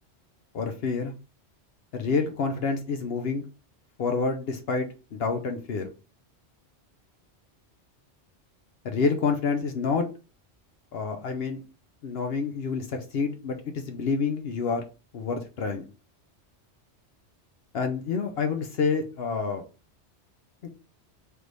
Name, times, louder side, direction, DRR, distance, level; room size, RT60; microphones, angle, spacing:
voice 1, 0.5-1.1 1.9-3.4 4.0-5.9 8.8-10.1 10.9-11.6 12.0-14.8 15.1-15.8 17.7-19.6, left 4 dB, 65° left, 5 dB, 0.8 m, -28 dB
3.3 x 3.2 x 3.9 m, 0.32 s
omnidirectional pair, 1.2 m